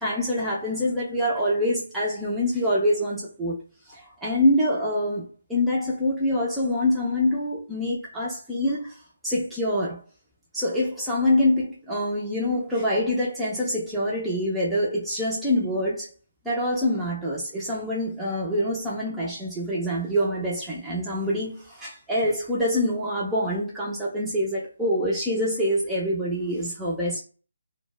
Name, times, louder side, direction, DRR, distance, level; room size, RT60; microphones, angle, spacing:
voice 1, 0.0-3.5 3.9-9.0 9.2-10.0 10.5-16.1 16.4-27.2, left 1 dB, 5° right, 0.3 m, -25 dB
2.1 x 2.0 x 3.1 m
hypercardioid pair, 175°, 0 cm